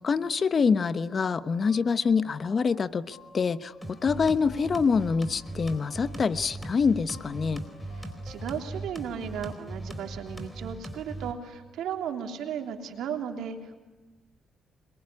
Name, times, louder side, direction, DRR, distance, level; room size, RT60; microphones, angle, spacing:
voice 1, 0.0-3.7 4.0-7.6, left 5 dB, 40° left, 13 dB, 1.0 m, -25 dB
sound 1, 0.9-8.9, left 3 dB, 85° left, 6.1 m, -54 dB
sound 2, 3.8-11.3, right 1 dB, 5° left, 4.2 m, -39 dB
voice 2, 7.9-13.8, right 8 dB, 80° right, 4 dB, 3.3 m, -35 dB
27.0 x 22.5 x 9.8 m, 1.2 s
cardioid pair, 90°, 0 cm